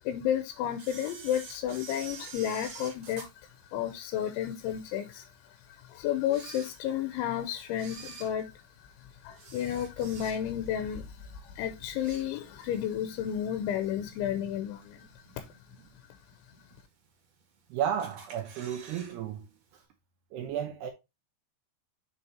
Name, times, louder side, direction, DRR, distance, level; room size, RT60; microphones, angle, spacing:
voice 1, 0.0-15.5, left 10 dB, 80° left, 3.1 m, -32 dB
Camera, 0.8-4.3 4.8-4.9 5.6-5.7 6.2-7.2 7.7-10.7 11.1-11.4 11.7-12.8 13.1-13.2 14.1-14.2 14.8-15.2 15.6-15.7 15.9-16.0 16.2-16.3 17.0-17.6 18.0-19.2 19.4-19.5 19.8-19.9, right 5 dB, 50° right, 2.2 m, -47 dB
voice 2, 17.7-19.5 19.7-19.8 20.3-20.9, right 9 dB, 75° right, 2.5 m, -33 dB
7.8 x 5.9 x 2.8 m
omnidirectional pair, 5.6 m